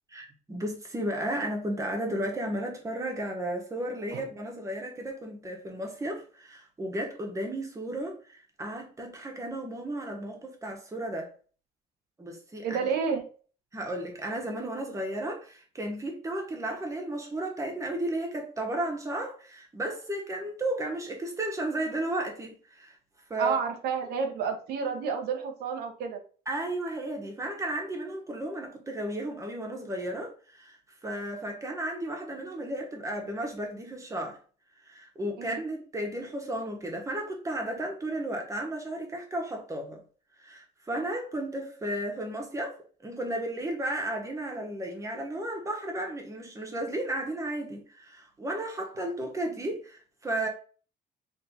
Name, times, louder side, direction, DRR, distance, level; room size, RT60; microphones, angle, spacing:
voice 1, 0.1-11.3 12.2-12.8 13.7-23.0 23.3-23.6 26.5-34.4 34.8-40.0 40.4-42.8 43.0-50.5, right 1 dB, 20° right, 1.3 m, -34 dB
voice 2, 12.6-13.2 23.4-26.2 35.4-35.6, right 6 dB, 70° right, 0.9 m, -30 dB
4.4 x 3.0 x 2.7 m
cardioid pair, 110°, 17 cm